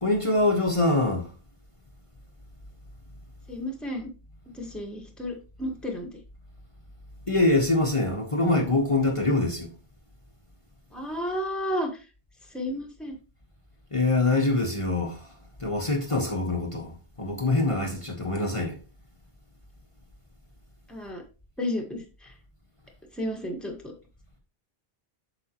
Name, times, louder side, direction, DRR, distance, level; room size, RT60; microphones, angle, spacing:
voice 1, 0.0-1.3 7.3-9.7 13.9-18.8, left 2 dB, 30° left, 1.4 m, -24 dB
voice 2, 3.5-4.1 4.5-6.1 10.9-12.0 12.5-13.1 20.9-21.2 21.6-22.3 23.1-23.9, left 1 dB, ahead, 1.5 m, -32 dB
8.4 x 6.2 x 3.0 m
omnidirectional pair, 1.1 m